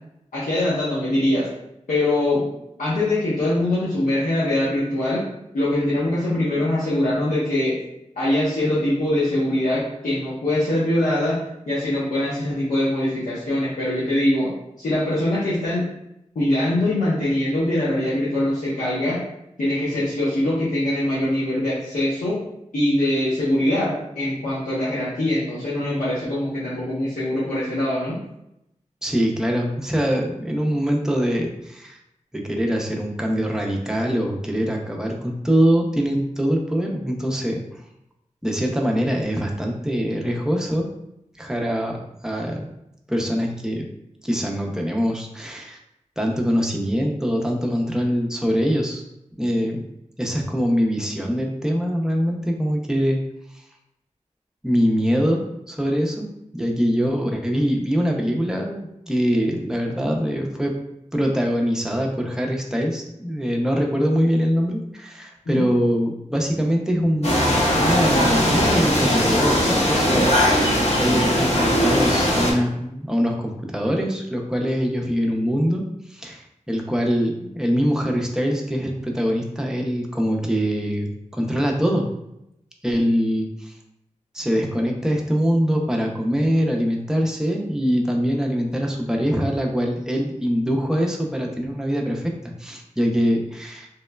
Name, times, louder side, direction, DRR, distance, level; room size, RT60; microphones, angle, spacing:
voice 1, 0.3-1.5 1.9-2.4 2.8-5.3 5.5-7.7 8.2-11.4 11.7-14.5 14.8-15.9 16.3-19.2 19.6-22.4 22.7-28.2 65.5-65.6, left 1 dB, 90° left, -10 dB, 0.7 m, -22 dB
voice 2, 29.0-32.0 32.3-37.8 38.4-40.9 41.4-42.0 42.2-42.7 43.1-43.9 44.2-45.8 46.2-49.0 49.4-49.8 50.2-53.2 53.5-53.6 54.6-55.4 55.7-60.7 61.1-70.4 71.0-82.1 82.8-83.7 84.3-93.9, equal, 5° right, 0 dB, 0.5 m, -23 dB
sound 1, 67.2-72.5, equal, 55° left, 0.8 m, -19 dB
3.0 x 2.0 x 2.2 m, 0.83 s
cardioid pair, 40°, 13 cm